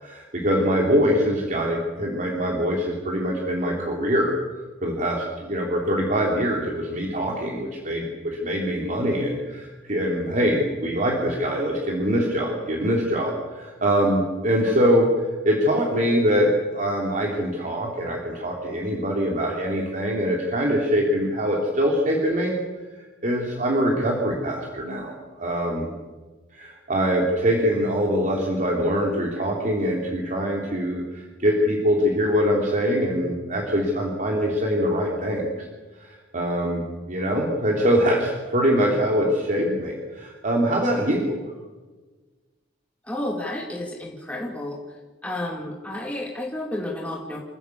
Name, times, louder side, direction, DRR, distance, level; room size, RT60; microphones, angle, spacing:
voice 1, 0.0-4.4 4.8-22.5 22.9-25.9 26.5-35.7 36.0-41.4, equal, 40° right, -1 dB, 3.4 m, -23 dB
voice 2, 43.0-44.8 45.2-47.4, left 1 dB, 5° left, 0 dB, 2.4 m, -31 dB
27.5 x 15.5 x 8.5 m, 1.3 s
head